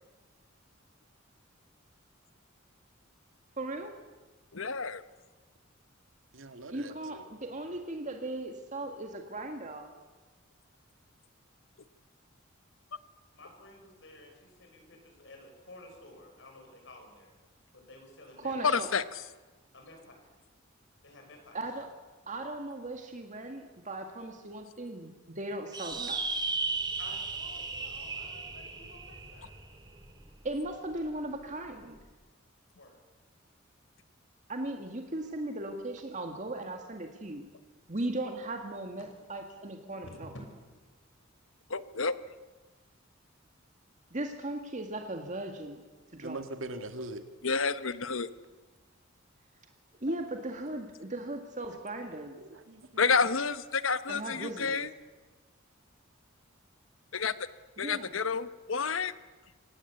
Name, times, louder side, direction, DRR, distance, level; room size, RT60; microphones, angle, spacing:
voice 1, 3.6-3.9 6.7-9.9 18.4-18.9 21.5-21.9 22.3-26.2 30.4-32.0 34.5-37.5 37.9-40.3 44.1-45.8 46.1-46.4 50.0-52.4 54.1-54.8 57.8-58.2, right 2 dB, 40° right, 4 dB, 1.9 m, -37 dB
voice 2, 4.5-5.0 18.6-19.0 41.7-42.1 47.4-48.3 53.0-54.9 57.1-57.3 57.8-59.1, left 5 dB, 80° left, 13 dB, 1.1 m, -29 dB
voice 3, 6.3-7.3 46.2-47.2 50.1-50.2 51.7-52.0 52.4-53.2, right 2 dB, 80° right, 7 dB, 2.0 m, -42 dB
voice 4, 13.3-17.3 17.7-18.8 19.7-20.1 21.0-21.6 27.0-29.5 32.7-33.0 40.0-40.3, left 1 dB, 65° left, 3 dB, 6.6 m, -52 dB
sound 1, 25.7-30.5, right 4 dB, 20° right, 2.5 m, -35 dB
26.0 x 18.0 x 8.3 m, 1.3 s
head